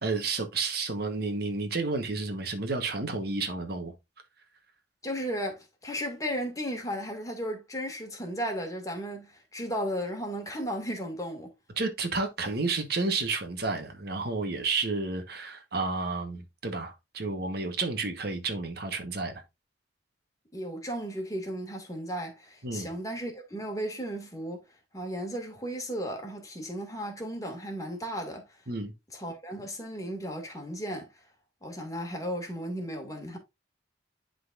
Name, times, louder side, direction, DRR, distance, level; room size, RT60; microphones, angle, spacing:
voice 1, 0.0-3.9 11.8-19.4 22.6-22.9 28.7-28.9, right 3 dB, 55° right, 1.2 m, -31 dB
voice 2, 5.0-11.5 20.5-24.6 24.9-28.5 29.1-31.1 31.6-33.4, equal, 20° left, 2.0 m, -35 dB
11.5 x 4.0 x 2.5 m
head